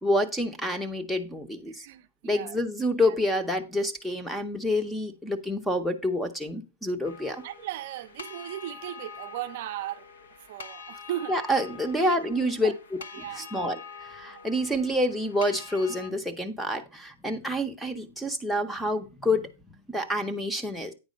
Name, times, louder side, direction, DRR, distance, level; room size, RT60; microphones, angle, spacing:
voice 1, 0.0-1.9 2.2-7.4 11.3-20.9, left 1 dB, ahead, 0.7 m, -28 dB
voice 2, 1.7-2.6 3.0-3.2 7.4-10.1 10.5-11.3 12.0-12.7 13.1-13.5 14.2-14.5, right 13 dB, 50° right, 0.5 m, -37 dB
sound 1, 7.0-16.1, left 6 dB, 90° left, 1.2 m, -45 dB
9.1 x 4.7 x 5.1 m
hypercardioid pair, 155°, 0 cm